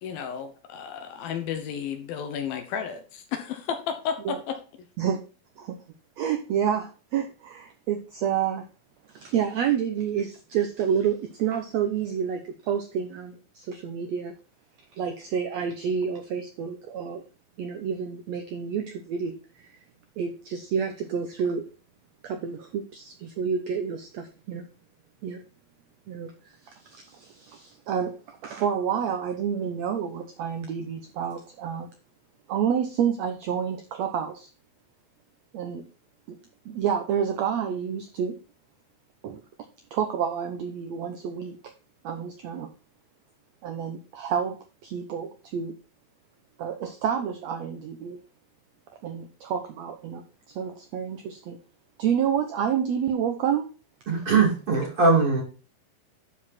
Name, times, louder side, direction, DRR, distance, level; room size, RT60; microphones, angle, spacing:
voice 1, 0.0-4.6, left 7 dB, 80° left, 2.8 m, -32 dB
voice 2, 6.2-8.6 9.1-14.3 14.9-17.2 17.6-19.7 20.2-21.6 22.2-24.7 25.2-25.4 26.1-26.3 26.6-28.1 28.4-31.9 32.5-34.5 35.5-35.8 36.3-36.4 36.6-38.4 39.2-39.4 39.9-41.6 42.0-42.7 43.6-44.6 44.8-45.7 46.6-48.2 49.0-50.2 50.5-51.6 52.0-53.7, right 8 dB, 80° right, 1.5 m, -29 dB
voice 3, 54.1-55.4, right 4 dB, 40° right, 3.3 m, -21 dB
11.5 x 4.9 x 4.2 m
omnidirectional pair, 4.2 m